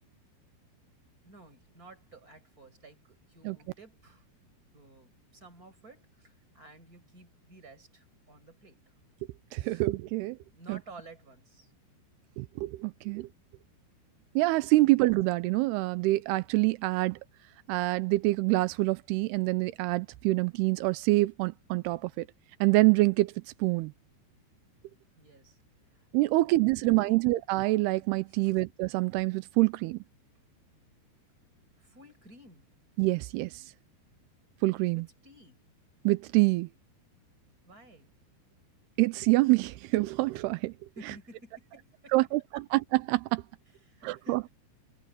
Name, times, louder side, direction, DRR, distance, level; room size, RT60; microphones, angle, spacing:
voice 1, 1.2-8.8 9.5-9.9 10.5-11.7 14.8-14.9 25.2-25.6 25.9-27.2 28.3-28.6 31.8-32.7 34.9-35.6 37.7-38.1 41.0-42.3 43.7-44.5, right 2 dB, 20° right, 6.7 m, -54 dB
voice 2, 9.5-10.4 10.7-10.8 12.4-13.3 14.4-17.2 17.7-22.3 22.6-23.3 23.6-23.9 26.1-30.0 33.0-33.6 34.6-35.0 36.1-36.7 39.0-40.7 42.1-42.4 42.7-43.4 44.0-44.4, right 21 dB, 85° right, 2.3 m, -26 dB
omnidirectional pair, 5.3 m